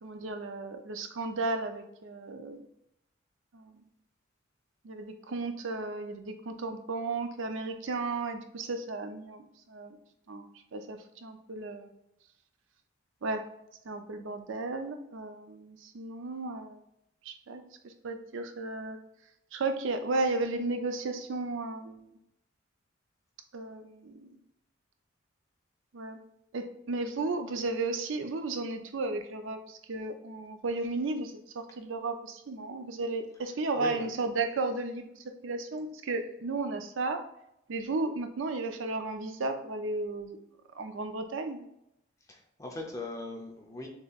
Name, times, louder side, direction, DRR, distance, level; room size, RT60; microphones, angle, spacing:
voice 1, 0.0-2.7 3.5-3.7 4.8-10.0 10.3-11.9 13.2-13.5 13.9-16.8 17.2-19.0 19.5-22.1 23.5-24.4 25.9-26.2 26.5-37.2 37.7-40.4 40.7-41.7, right 3 dB, 70° right, 7 dB, 0.5 m, -34 dB
voice 2, 33.7-34.1 42.3-43.9, left 2 dB, 15° left, 1 dB, 0.6 m, -39 dB
6.6 x 2.9 x 2.4 m, 0.80 s
head